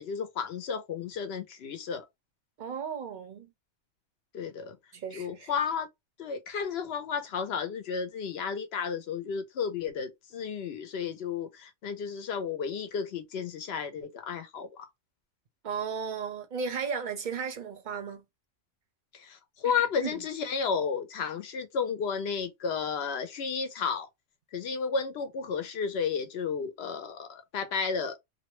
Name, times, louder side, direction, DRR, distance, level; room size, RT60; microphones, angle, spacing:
voice 1, 0.0-2.0 4.3-4.8 5.1-5.9 6.2-14.9 19.1-24.1 24.5-28.2, left 6 dB, 65° left, 0.8 m, -32 dB
voice 2, 2.6-3.5 4.9-5.5 15.6-18.2 19.8-20.2, right 6 dB, 50° right, 0.6 m, -35 dB
2.6 x 2.0 x 2.9 m
omnidirectional pair, 1.3 m